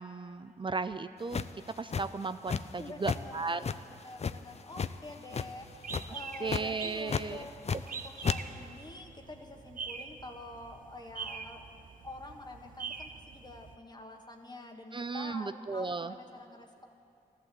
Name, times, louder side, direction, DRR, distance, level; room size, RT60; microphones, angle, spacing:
voice 1, 0.0-1.5 1.8-3.7 6.4-7.4 14.9-16.1, right 4 dB, 30° right, 12 dB, 0.5 m, -35 dB
sound 1, 1.3-2.8 3.0-3.2 3.6-4.9 5.3-5.6 5.9-6.1 6.5-6.6 7.1-7.9 8.2-8.4, left 6 dB, 45° left, 0.5 m, -32 dB
voice 2, 2.8-7.5 7.8-11.6 12.0-16.9, left 2 dB, 25° left, 2 dB, 1.5 m, -47 dB
sound 2, 5.6-13.8, right 5 dB, 60° right, 0.8 m, -44 dB
13.5 x 12.0 x 7.7 m, 2.5 s
supercardioid pair, 50°, 16 cm